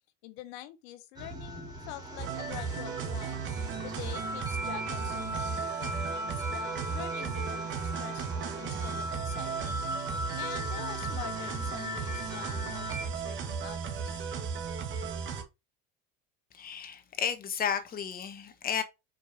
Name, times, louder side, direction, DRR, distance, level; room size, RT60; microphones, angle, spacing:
voice 1, 0.2-3.5 3.8-9.8 10.3-14.3, left 14 dB, 90° left, 1.0 m, -46 dB
sound 1, 1.2-13.0, equal, 10° right, 2.3 m, -38 dB
sound 2, 2.2-15.4, right 6 dB, 35° right, 1.4 m, -36 dB
voice 2, 16.5-18.8, left 8 dB, 30° left, 1.1 m, -33 dB
5.2 x 4.1 x 4.8 m
cardioid pair, 150°, 31 cm